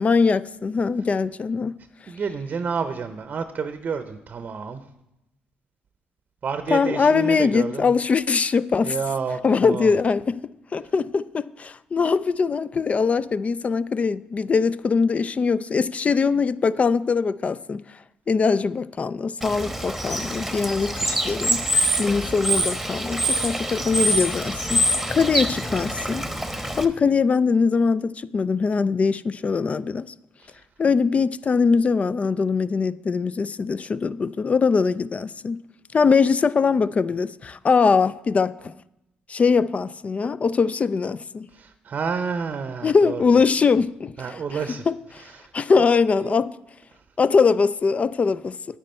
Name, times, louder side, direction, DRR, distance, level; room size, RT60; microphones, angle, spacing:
voice 1, 0.0-1.8 6.7-9.0 9.4-18.0 18.3-21.6 22.0-26.2 26.5-30.1 30.8-35.6 35.9-38.7 39.3-41.5 42.8-44.1 44.5-44.6 44.9-45.2 45.5-46.5 47.2-48.6, left 5 dB, 40° left, 0.3 m, -22 dB
voice 2, 2.1-4.8 6.4-7.9 8.8-9.9 41.5-43.2 44.2-44.9 45.2-45.5 45.8-46.3, right 5 dB, 50° right, 0.7 m, -30 dB
Bird / Water, 19.4-26.9, right 1 dB, 5° right, 1.1 m, -25 dB
9.3 x 8.8 x 4.3 m
supercardioid pair, 60°, 4 cm